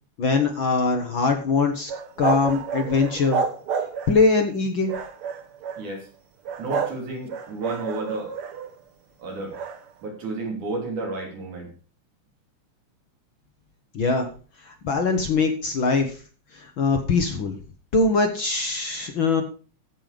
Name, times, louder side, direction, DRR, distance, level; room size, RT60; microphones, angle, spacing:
voice 1, 0.2-1.9 2.2-3.4 4.1-4.9 13.9-14.3 14.6-16.1 16.6-17.6 17.9-19.4, left 4 dB, 55° left, 5 dB, 1.6 m, -22 dB
sound 1, 1.9-4.3 4.9-5.8 6.4-7.0 7.3-8.7 9.5-9.8, right 6 dB, 60° right, 1.7 m, -29 dB
voice 2, 5.8-6.1 6.6-8.3 9.2-9.6 10.0-11.7, right 2 dB, 85° right, 0 dB, 5.0 m, -31 dB
15.5 x 5.6 x 5.1 m, 0.37 s
omnidirectional pair, 3.4 m